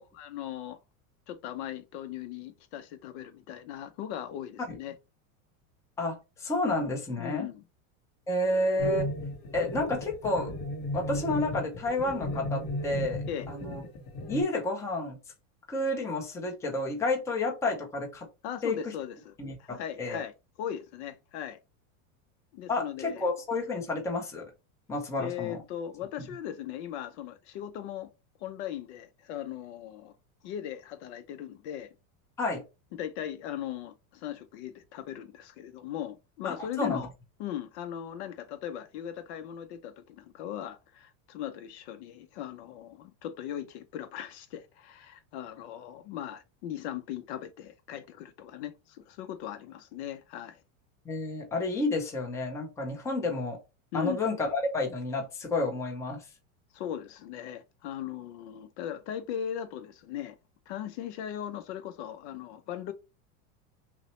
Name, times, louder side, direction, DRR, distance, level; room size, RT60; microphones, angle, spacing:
voice 1, 0.1-0.8 1.3-4.9 7.2-7.6 13.3-13.5 18.4-20.3 20.6-21.6 22.5-23.3 25.2-28.1 28.4-30.1 30.4-31.9 32.9-37.1 37.4-50.6 53.9-54.2 56.7-60.4 60.7-62.9, left 10 dB, 55° left, 0.6 m, -38 dB
voice 2, 6.0-7.5 8.3-9.1 9.5-10.5 10.9-13.8 14.3-15.2 15.7-18.3 18.6-18.9 19.4-20.2 22.7-24.5 24.9-25.6 32.4-32.6 36.4-37.0 51.0-53.6 53.9-56.2, left 2 dB, 5° left, 0.6 m, -30 dB
sound 1, 8.8-14.4, left 1 dB, 35° left, 1.0 m, -35 dB
5.8 x 2.0 x 3.0 m
supercardioid pair, 155°, 42 cm